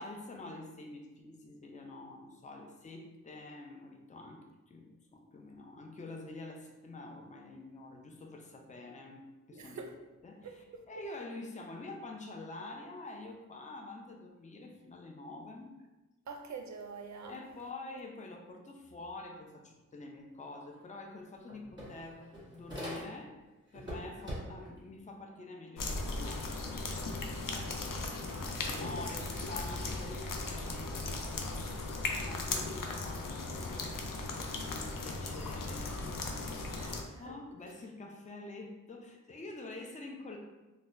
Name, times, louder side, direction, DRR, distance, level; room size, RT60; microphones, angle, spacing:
voice 1, 0.0-9.8 10.2-15.7 17.3-23.3 23.7-27.9 28.2-36.2 36.8-40.4, left 2 dB, 25° left, 1 dB, 0.4 m, -47 dB
voice 2, 9.5-9.9 10.4-10.8 16.3-17.4 28.0-29.2 36.8-37.4, right 4 dB, 60° right, 4 dB, 0.5 m, -46 dB
sound 1, 20.7-20.8 21.1-23.4 23.7-24.8, equal, 15° right, 1.3 m, -43 dB
sound 2, 25.8-37.0, left 3 dB, 90° left, 0.5 m, -37 dB
4.0 x 2.1 x 2.5 m, 1.1 s
wide cardioid pair, 90°, 32 cm